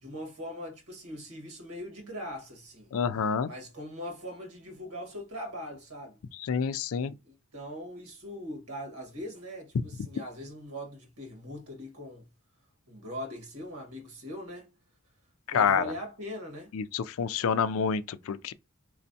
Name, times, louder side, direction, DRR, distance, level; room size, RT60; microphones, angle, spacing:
voice 1, 0.0-2.9 3.4-6.2 7.2-12.3 12.9-14.7 15.5-16.7, equal, 85° right, 1.5 m, -41 dB
voice 2, 2.9-3.5 6.4-7.1 15.5-15.8 16.7-18.5, left 6 dB, 65° left, 0.4 m, -28 dB
4.4 x 3.1 x 2.7 m
head